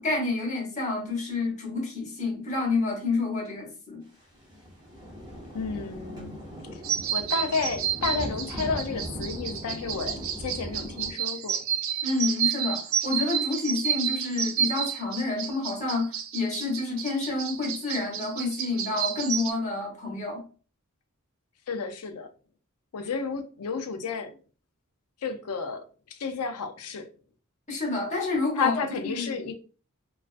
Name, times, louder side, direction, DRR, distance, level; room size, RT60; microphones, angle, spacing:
voice 1, 0.0-4.0 12.0-20.4 27.7-29.3, left 3 dB, 35° left, 0.8 m, -29 dB
sound 1, 4.2-11.1, equal, 20° right, 0.7 m, -39 dB
voice 2, 5.5-6.4 6.7-6.8 7.1-11.6 21.7-22.3 22.9-24.4 25.2-25.8 26.1-27.1 28.6-29.5, left 5 dB, 90° left, 0.5 m, -31 dB
sound 2, 6.8-19.5, right 8 dB, 65° right, 0.3 m, -30 dB
2.4 x 2.3 x 2.4 m
head